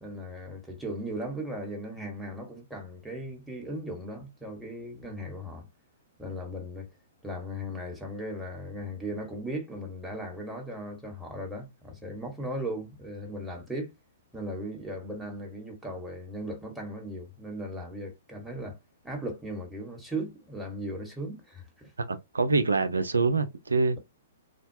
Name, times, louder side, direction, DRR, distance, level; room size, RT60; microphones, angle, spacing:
voice 1, 0.0-5.7 6.2-6.9 7.2-13.9 14.3-18.8 19.0-21.9, right 1 dB, 5° right, 1.6 m, -37 dB
voice 2, 22.1-24.0, right 4 dB, 85° right, 0.7 m, -25 dB
4.3 x 2.4 x 2.8 m
figure-of-eight pair, 120°, 0 cm